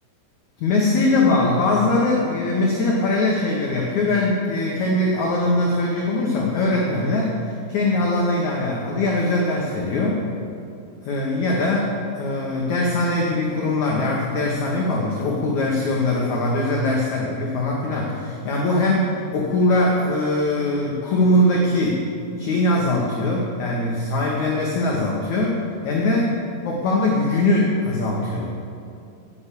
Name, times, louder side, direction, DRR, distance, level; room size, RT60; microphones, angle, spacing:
voice 1, 0.6-10.2 11.0-22.1 22.4-26.3 26.6-28.5, left 2 dB, 90° left, -2 dB, 1.6 m, -21 dB
8.4 x 7.8 x 8.2 m, 2.5 s
omnidirectional pair, 5.0 m